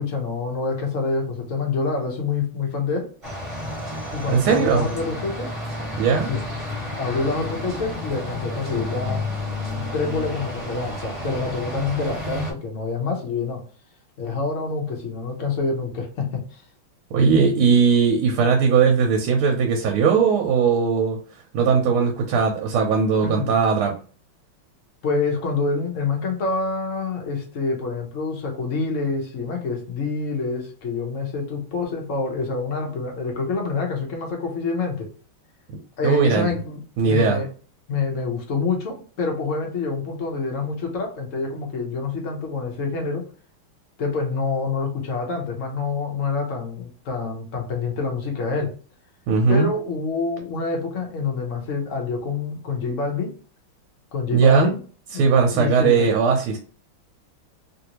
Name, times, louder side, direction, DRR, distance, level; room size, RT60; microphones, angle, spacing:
voice 1, 0.0-3.1 4.1-5.5 6.3-6.4 7.0-9.3 9.7-13.6 14.2-16.6 23.2-23.5 25.0-35.1 36.0-37.5 37.9-43.3 44.0-48.7 49.5-53.3 54.1-54.8 55.1-55.2 55.5-56.1, left 4 dB, 60° left, 1 dB, 0.8 m, -27 dB
sound 1, 3.2-12.5, left 1 dB, 20° right, 0.9 m, -31 dB
voice 2, 4.3-4.9 6.0-6.3 17.1-21.2 21.5-23.9 36.0-36.5 37.0-37.4 49.3-49.7 54.3-54.7 55.1-56.6, right 5 dB, 80° right, 2 dB, 1.5 m, -19 dB
3.4 x 2.6 x 2.9 m, 0.39 s
omnidirectional pair, 2.3 m